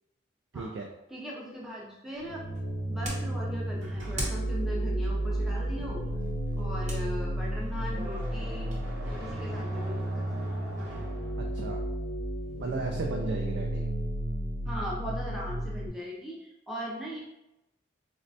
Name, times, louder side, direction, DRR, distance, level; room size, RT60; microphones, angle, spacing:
voice 1, 0.5-0.9 11.4-11.8 12.6-13.8, right 3 dB, 65° right, 1 dB, 0.3 m, -35 dB
voice 2, 1.1-2.4 2.9-6.0 6.6-8.7 9.0-10.2 14.7-17.2, equal, ahead, -5 dB, 0.6 m, -39 dB
sound 1, 2.1-8.9, right 1 dB, 40° right, 0.7 m, -44 dB
sound 2, 2.2-15.9, right 1 dB, 75° left, 0.5 m, -32 dB
sound 3, 3.8-11.9, right 1 dB, 80° right, 0.8 m, -46 dB
4.0 x 2.1 x 2.6 m, 0.90 s
head